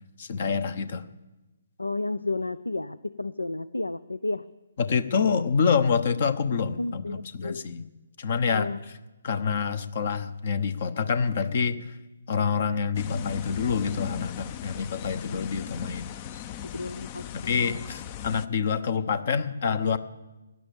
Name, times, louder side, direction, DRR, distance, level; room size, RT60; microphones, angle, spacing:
voice 1, 0.2-1.0 4.8-7.8 8.2-8.7 9.2-11.9 12.3-16.1 17.3-20.0, left 6 dB, 50° left, 14 dB, 1.0 m, -27 dB
voice 2, 1.8-4.4 6.8-7.6 8.5-8.8 16.7-17.8, left 2 dB, 85° left, 17 dB, 0.5 m, -32 dB
sound 1, 12.9-18.5, left 10 dB, 30° left, 0.5 m, -38 dB
17.0 x 10.5 x 7.1 m, 1.1 s
figure-of-eight pair, 135°, 0 cm